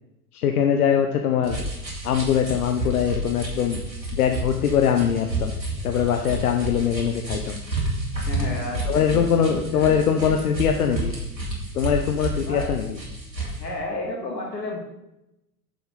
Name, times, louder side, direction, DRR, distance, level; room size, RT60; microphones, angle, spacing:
voice 1, 0.3-1.6 2.0-3.8 4.1-5.5 5.8-7.6 8.9-11.1 11.7-13.0, left 8 dB, 60° left, 5 dB, 0.8 m, -22 dB
sound 1, 1.4-13.6, right 1 dB, 85° right, 2.7 m, -30 dB
voice 2, 8.2-10.5 12.4-12.7 13.4-14.8, left 2 dB, 80° left, -1 dB, 2.7 m, -33 dB
7.7 x 6.9 x 5.3 m, 0.90 s
figure-of-eight pair, 85°, 50 cm